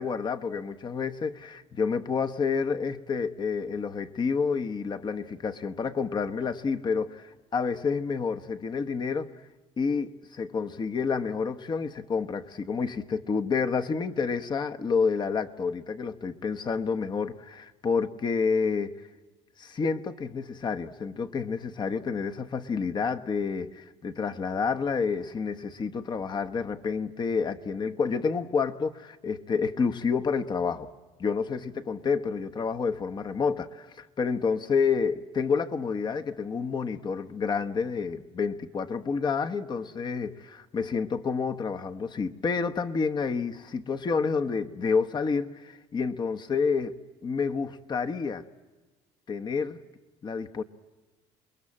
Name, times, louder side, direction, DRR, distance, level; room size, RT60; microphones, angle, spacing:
voice 1, 0.0-9.3 9.8-19.0 19.6-30.9 31.2-46.9 47.2-48.5 49.3-49.8 50.2-50.6, left 5 dB, 35° left, 1.1 m, -29 dB
28.0 x 21.5 x 8.7 m
supercardioid pair, 100°, 13 cm